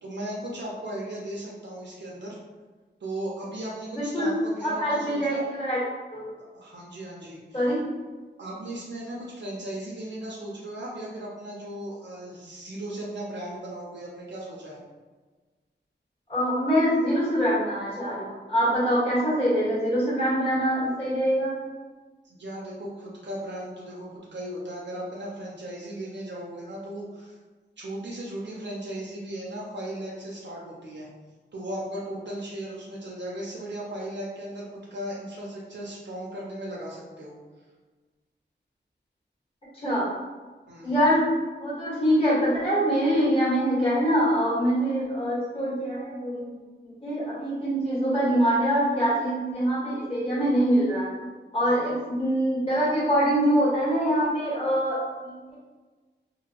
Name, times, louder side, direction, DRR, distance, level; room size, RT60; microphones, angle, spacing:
voice 1, 0.0-2.4 3.0-5.4 6.5-7.7 8.4-14.8 22.2-27.4 27.8-31.1 31.5-37.3 40.7-41.0 51.6-51.9, right 1 dB, 70° right, -4 dB, 0.6 m, -37 dB
voice 2, 3.9-4.3 4.6-5.8 6.1-6.2 7.5-7.8 16.3-21.5 39.8-40.1 40.8-46.5 47.0-51.1 51.5-55.5, equal, 30° left, -9 dB, 1.4 m, -24 dB
2.9 x 2.5 x 2.8 m, 1.3 s
wide cardioid pair, 90°, 19 cm